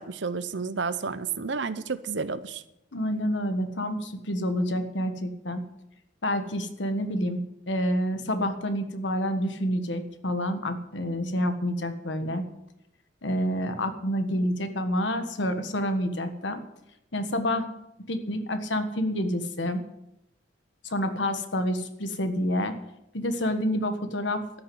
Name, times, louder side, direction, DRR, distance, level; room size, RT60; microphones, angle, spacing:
voice 1, 0.0-2.6, right 5 dB, 70° right, 14 dB, 0.8 m, -31 dB
voice 2, 2.9-5.7 6.2-12.5 13.2-16.6 17.1-17.7 18.1-19.8 20.8-22.7 23.1-24.6, equal, 75° left, 8 dB, 1.5 m, -28 dB
13.0 x 6.6 x 9.5 m, 0.84 s
head